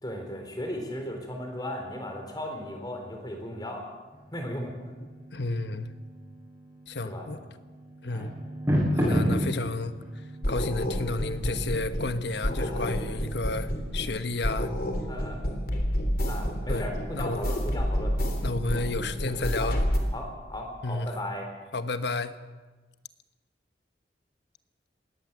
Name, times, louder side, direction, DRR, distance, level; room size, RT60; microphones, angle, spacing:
voice 1, 0.0-3.9 4.3-4.7 7.0-7.3 8.1-8.3 12.6-12.9 15.1-15.4 16.3-18.2 19.6-19.7 20.1-21.5, left 1 dB, 25° left, 4.0 m, -36 dB
sound 1, 4.1-14.9, equal, 15° right, 7.4 m, -34 dB
voice 2, 5.3-5.9 6.9-7.4 8.0-8.3 8.9-9.9 10.5-14.7 16.7-16.9 17.1-17.4 18.4-19.8 20.8-21.1 21.7-22.3, left 2 dB, 75° left, 1.2 m, -31 dB
sound 2, 10.4-12.2 12.4-14.2 14.4-20.0, equal, 55° left, 3.5 m, -29 dB
21.5 x 18.0 x 7.5 m
head